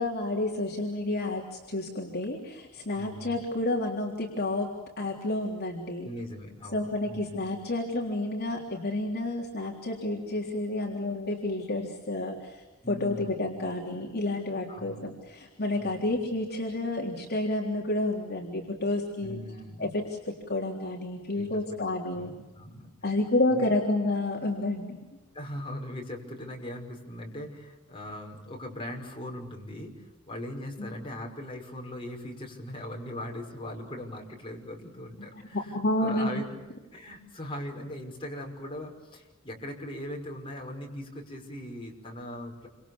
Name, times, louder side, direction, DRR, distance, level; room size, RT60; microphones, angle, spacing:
voice 1, 0.0-6.1 6.7-19.4 19.8-22.3 23.0-25.0 30.8-31.1 35.3-36.4, left 2 dB, 45° left, -1 dB, 3.6 m, -30 dB
voice 2, 3.0-3.4 6.0-7.4 12.8-13.5 14.7-15.1 15.7-16.2 19.2-19.9 21.3-21.6 22.1-22.9 23.5-23.7 25.3-36.4 36.9-42.7, left 1 dB, 25° left, 0 dB, 5.7 m, -40 dB
29.5 x 26.0 x 7.2 m, 1.2 s
head